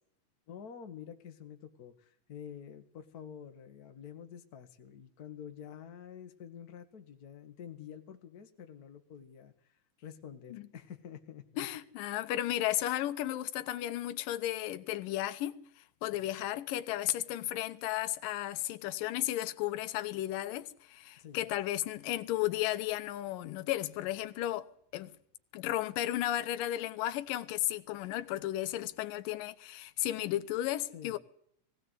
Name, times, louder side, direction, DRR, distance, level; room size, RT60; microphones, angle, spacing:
voice 1, 0.5-11.7 16.1-16.3 21.2-21.4 30.9-31.2, left 8 dB, 40° left, 1.4 m, -48 dB
voice 2, 11.6-15.6 16.0-24.7 24.9-25.1 25.5-31.2, left 14 dB, 80° left, 2.6 m, -34 dB
19.5 x 16.5 x 8.2 m
omnidirectional pair, 3.9 m